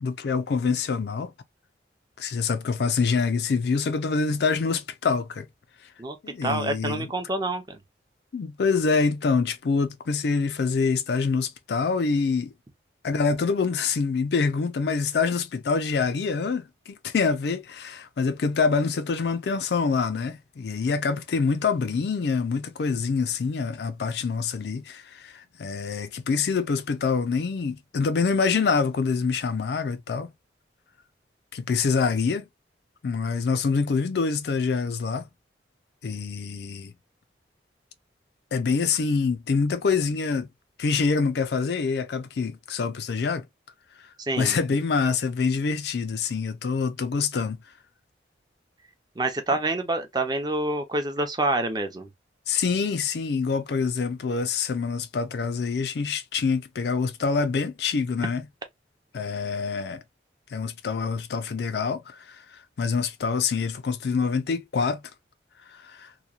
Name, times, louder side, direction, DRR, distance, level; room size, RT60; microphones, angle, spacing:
voice 1, 0.0-1.3 2.2-5.5 6.2-7.1 8.3-12.5 13.0-30.3 31.5-32.5 33.0-35.3 36.0-36.9 38.5-40.5 40.8-43.5 44.4-47.6 52.5-58.4 59.1-60.0 60.5-65.0 65.7-66.1, left 5 dB, 65° left, 0.4 m, -26 dB
voice 2, 6.4-7.8 44.2-44.6 49.2-52.1, right 2 dB, 20° right, 0.5 m, -27 dB
2.9 x 2.2 x 2.3 m
head